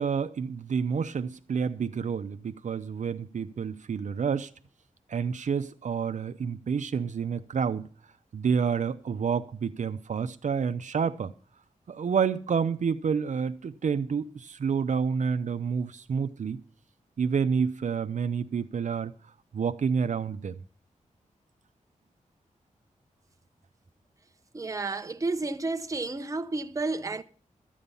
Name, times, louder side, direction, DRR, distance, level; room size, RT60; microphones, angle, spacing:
voice 1, 0.0-4.5 5.1-7.9 8.3-11.3 11.9-16.6 17.2-19.1 19.5-20.6, right 6 dB, 65° right, 0.7 m, -29 dB
voice 2, 24.5-27.2, right 3 dB, 25° right, 0.8 m, -31 dB
13.5 x 8.7 x 5.5 m
wide cardioid pair, 110°, 13 cm